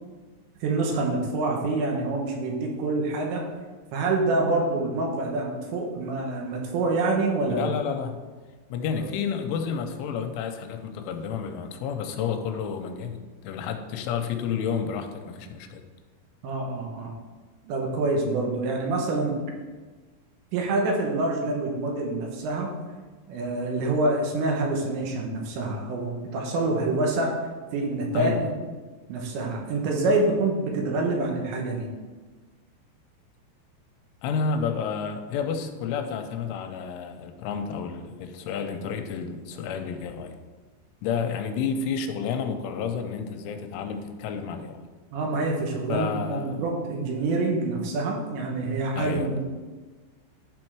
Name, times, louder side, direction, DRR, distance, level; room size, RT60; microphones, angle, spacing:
voice 1, 0.6-3.4 3.9-7.7 16.4-17.1 17.7-19.4 20.5-22.7 23.3-27.4 27.7-28.5 29.1-31.9 45.1-49.4, right 2 dB, 75° right, 0 dB, 3.2 m, -26 dB
voice 2, 7.5-8.2 8.7-15.8 28.1-28.5 34.2-40.4 41.0-44.9 45.9-46.6 49.0-49.3, left 6 dB, 85° left, 6 dB, 3.1 m, -30 dB
12.0 x 4.3 x 4.6 m, 1.3 s
omnidirectional pair, 5.5 m